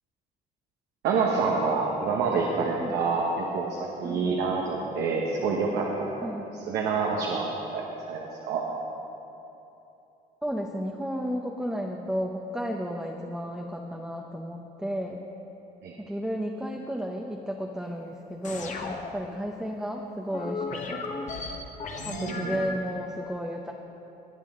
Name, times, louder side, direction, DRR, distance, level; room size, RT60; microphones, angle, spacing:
voice 1, 1.0-6.3 6.7-8.7 15.8-15.9 22.0-22.6, right 4 dB, 85° right, -1 dB, 1.2 m, -27 dB
voice 2, 4.0-4.3 6.2-6.4 10.4-15.2 16.0-21.1 22.0-23.7, equal, 5° right, 0 dB, 0.7 m, -33 dB
sound 1, 18.4-19.5 20.3-22.9, left 4 dB, 45° left, 1.2 m, -35 dB
20.0 x 8.2 x 3.8 m, 3.0 s
cardioid pair, 110°, 17 cm